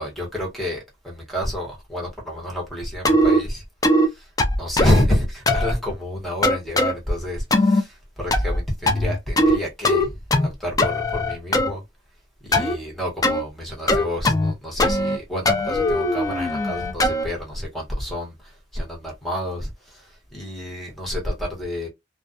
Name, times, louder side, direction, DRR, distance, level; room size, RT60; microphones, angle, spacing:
voice 1, 0.0-3.6 3.9-4.3 4.6-11.8 12.4-21.9, left 1 dB, ahead, 1.0 m, -28 dB
sound 1, 3.0-3.4 3.8-4.1 4.4-5.0 5.5-5.7 6.4-6.9 7.5-7.8 8.3-8.6 8.9-9.6 9.8-10.5 10.8-11.7 12.5-12.8 13.2-13.4 13.9-14.5 14.8-15.2 15.5-17.3, left 1 dB, 20° left, 0.4 m, -20 dB
2.3 x 2.2 x 2.5 m
head